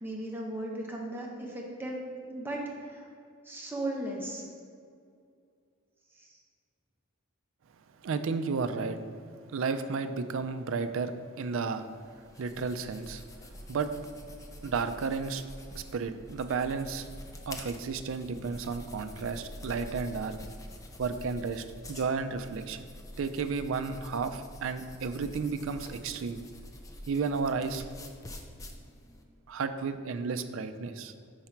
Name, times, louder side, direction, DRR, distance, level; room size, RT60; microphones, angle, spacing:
voice 1, 0.0-3.1 3.4-4.4 6.1-6.4, right 1 dB, 10° right, -2 dB, 0.7 m, -37 dB
voice 2, 8.0-9.0 9.5-11.9 12.4-13.2 13.7-13.9 14.6-15.4 15.7-17.1 17.5-20.4 21.0-22.9 23.2-26.4 27.1-27.8 29.5-31.1, right 5 dB, 60° right, 9 dB, 0.4 m, -32 dB
sound 1, 11.7-29.2, left 1 dB, 15° left, 0.4 m, -47 dB
5.7 x 4.8 x 4.4 m, 2.3 s
head